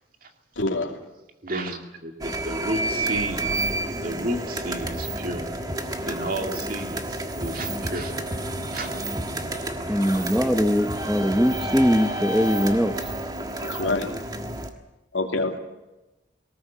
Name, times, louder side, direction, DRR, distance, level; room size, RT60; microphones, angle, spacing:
voice 1, 0.6-0.9 13.6-14.1 15.1-15.6, left 2 dB, 90° left, 4 dB, 2.7 m, -26 dB
voice 2, 1.4-3.5 4.0-5.5 6.0-8.1 8.7-8.9, right 1 dB, 45° right, 4 dB, 2.4 m, -32 dB
sound 1, 2.2-14.7, right 1 dB, 20° right, 1.5 m, -30 dB
voice 3, 9.9-13.0, equal, ahead, 7 dB, 0.9 m, -21 dB
19.5 x 18.5 x 8.4 m, 1.0 s
head